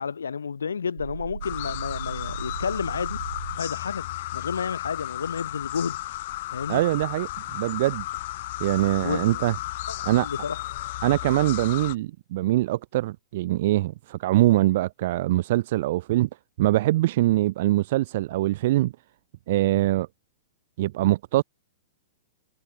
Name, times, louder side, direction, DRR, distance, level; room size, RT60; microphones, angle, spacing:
voice 1, 0.0-3.2 3.6-4.0 4.3-6.0 6.5-6.8 9.0-9.4 9.9-10.6, left 6 dB, 85° left, 5.2 m, -31 dB
sound 1, 1.0-3.6, right 6 dB, 85° right, 4.2 m, -37 dB
sound 2, 1.4-11.9, left 16 dB, 55° left, 7.8 m, -34 dB
voice 2, 6.7-8.0 8.6-9.5 10.1-10.3 11.0-16.3 16.6-18.9 19.5-20.1 20.8-21.4, right 16 dB, 55° right, 4.2 m, -23 dB
hypercardioid pair, 120°, 0 cm